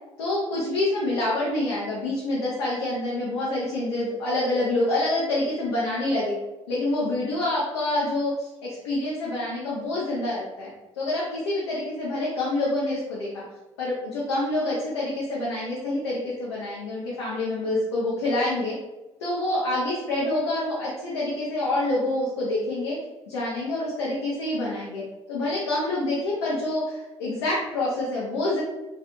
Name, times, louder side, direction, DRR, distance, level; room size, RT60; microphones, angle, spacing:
voice 1, 0.2-6.4 6.7-10.7 11.0-13.4 13.8-18.7 19.2-23.0 23.3-25.0 25.3-28.6, left 2 dB, 75° left, -6 dB, 0.6 m, -27 dB
2.3 x 2.2 x 2.9 m, 1.0 s
figure-of-eight pair, 50°, 15 cm